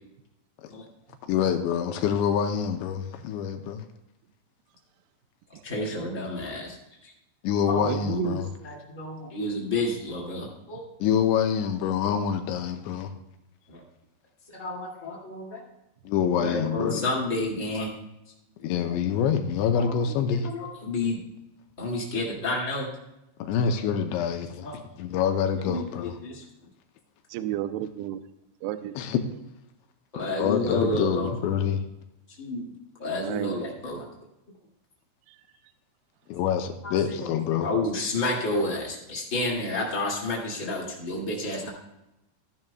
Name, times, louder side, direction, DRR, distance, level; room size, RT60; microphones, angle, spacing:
voice 1, 1.3-3.8 7.4-8.5 11.0-13.1 16.1-17.1 18.6-20.5 23.4-24.7 25.0-26.2 29.0-29.2 30.4-31.8 36.3-37.7, left 8 dB, 85° left, 6 dB, 2.8 m, -26 dB
voice 2, 5.6-6.8 7.0-7.1 7.7-7.9 8.4-10.8 13.7-13.8 14.5-15.6 16.4-17.9 18.8-18.9 19.7-19.9 20.4-21.2 21.8-22.9 23.6-23.7 24.6-24.7 25.7-25.9 26.2-26.4 30.1-31.3 32.4-32.7 33.0-34.0 36.8-41.7, left 2 dB, 35° left, -4 dB, 1.1 m, -30 dB
voice 3, 7.9-8.4 27.3-28.2 28.6-28.9 33.2-33.6, right 12 dB, 85° right, 11 dB, 2.4 m, -31 dB
16.0 x 10.5 x 2.3 m, 0.89 s
omnidirectional pair, 5.4 m